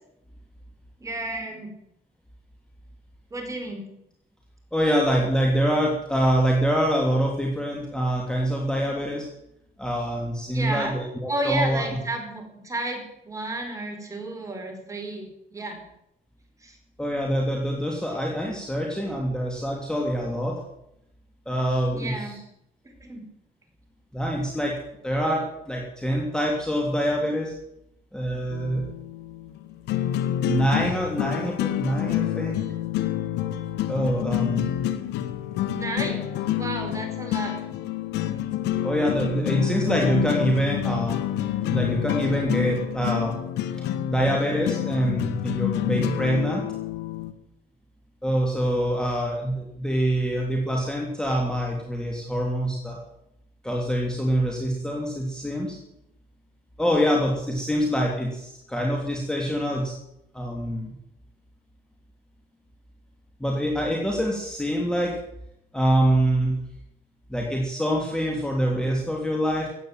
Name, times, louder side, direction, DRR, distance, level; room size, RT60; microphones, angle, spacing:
voice 1, 1.0-1.7 3.3-3.9 10.5-10.9 11.3-15.8 16.6-16.8 21.9-22.4 22.8-23.2 35.7-36.2 36.5-37.6, right 2 dB, 20° right, 3 dB, 4.8 m, -32 dB
voice 2, 4.7-9.3 9.8-11.8 17.0-20.6 21.4-22.3 24.1-24.7 25.0-27.5 28.1-28.8 30.4-32.6 33.9-34.8 38.8-41.2 41.7-43.4 44.1-46.6 48.2-53.0 53.6-55.8 56.8-59.9 60.3-60.9 63.4-65.2 65.7-66.6 67.3-69.7, equal, 5° left, -1 dB, 3.1 m, -25 dB
sound 1, 28.5-47.3, left 12 dB, 80° left, 1.4 m, -28 dB
15.5 x 9.3 x 9.0 m, 0.80 s
cardioid pair, 110°, 17 cm